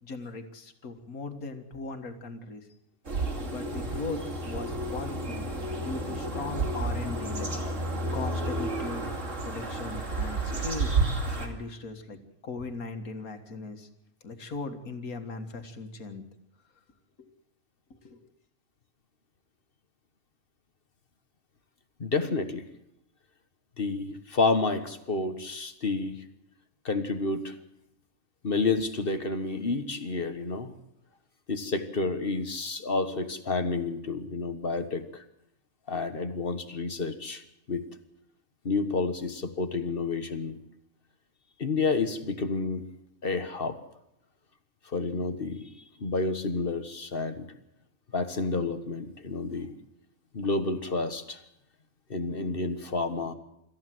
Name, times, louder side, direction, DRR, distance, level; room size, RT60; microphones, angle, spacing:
voice 1, 0.0-2.7 3.5-5.5 5.8-7.5 8.1-9.1 9.4-10.9 11.3-12.2 12.4-13.9 14.2-16.2 17.2-17.3 18.0-18.2, left 3 dB, 90° left, 6 dB, 2.2 m, -38 dB
sound 1, 3.1-11.5, right 2 dB, 60° right, 2.9 m, -31 dB
voice 2, 22.0-22.6 23.8-26.2 26.8-27.5 28.4-30.7 31.5-35.2 35.9-37.4 37.7-37.9 38.6-40.6 41.6-42.8 43.2-43.8 44.8-47.5 48.1-49.7 50.3-51.4 52.1-53.3, left 3 dB, 40° left, 9 dB, 1.5 m, -30 dB
26.0 x 14.0 x 7.7 m, 0.84 s
omnidirectional pair, 1.5 m